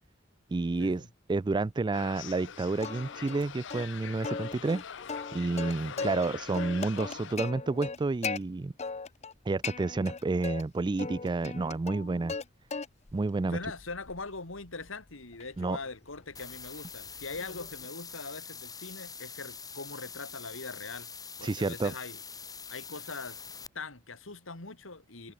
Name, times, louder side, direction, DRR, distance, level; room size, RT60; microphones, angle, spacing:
voice 1, 0.5-1.0 1.3-4.8 5.3-8.7 9.5-12.3 13.1-13.6 15.6-15.8 21.4-21.9, right 3 dB, 25° right, 0.3 m, -30 dB
sound 1, 1.9-7.4, left 8 dB, 65° left, 0.7 m, -44 dB
Plucked string instrument, 2.8-3.4 3.7-3.8 4.2-6.3 6.5-8.4 8.8-9.3 9.6-10.6 11.0-12.5 12.7-13.2 13.6-17.9, left 4 dB, 35° left, 0.8 m, -38 dB
voice 2, 5.8-6.2 13.5-21.1 21.4-22.2 22.7-23.5 23.7-25.3, left 3 dB, 85° left, 2.8 m, -42 dB
sound 2, 16.4-23.7, left 6 dB, 20° left, 4.0 m, -45 dB
head